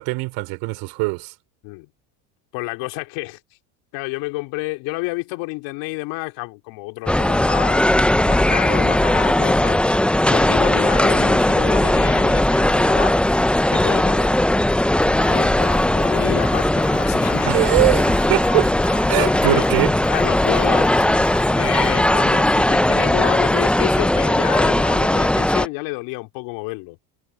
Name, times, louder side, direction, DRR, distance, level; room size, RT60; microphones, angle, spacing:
voice 1, 0.0-1.3 17.4-18.7 19.1-20.0, right 25 dB, 75° right, 4.4 m, -22 dB
voice 2, 2.5-3.4 3.9-9.8 10.3-13.4 13.7-14.4 15.3-17.6 19.2-19.6 20.1-20.9 21.6-27.1, left 24 dB, 75° left, 3.7 m, -29 dB
sound 1, 7.1-25.7, left 1 dB, 5° left, 0.5 m, -18 dB
sound 2, 15.0-22.2, left 7 dB, 35° left, 3.8 m, -35 dB
supercardioid pair, 100°, 43 cm